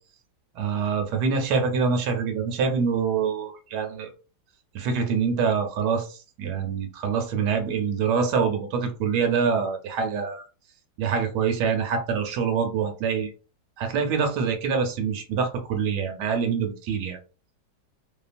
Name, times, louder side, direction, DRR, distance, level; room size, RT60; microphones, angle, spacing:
voice 1, 0.5-4.1 4.7-10.5 11.0-13.3 13.8-17.2, right 6 dB, 70° right, 5 dB, 1.1 m, -25 dB
2.8 x 2.4 x 2.4 m, 0.35 s
omnidirectional pair, 2.0 m